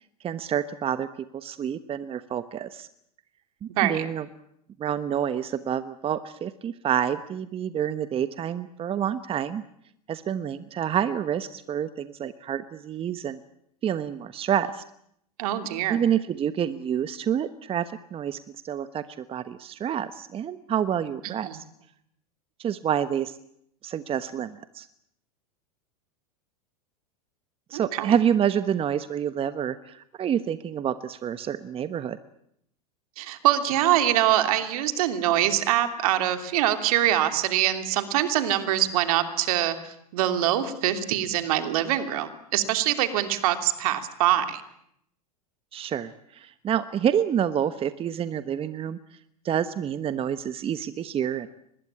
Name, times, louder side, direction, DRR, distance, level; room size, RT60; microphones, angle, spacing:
voice 1, 0.2-1.1 1.3-2.9 3.6-4.3 4.8-9.6 10.1-13.4 13.8-14.8 15.9-18.4 18.6-19.0 19.3-21.6 22.6-23.3 23.8-24.9 27.7-32.2 45.7-49.0 49.4-51.5, right 9 dB, 30° right, 13 dB, 1.2 m, -28 dB
voice 2, 3.7-4.1 15.4-16.0 21.2-21.6 27.7-28.2 33.2-44.6, right 12 dB, 65° right, 9 dB, 3.0 m, -24 dB
24.0 x 21.0 x 8.8 m, 0.72 s
hypercardioid pair, 100°, 20 cm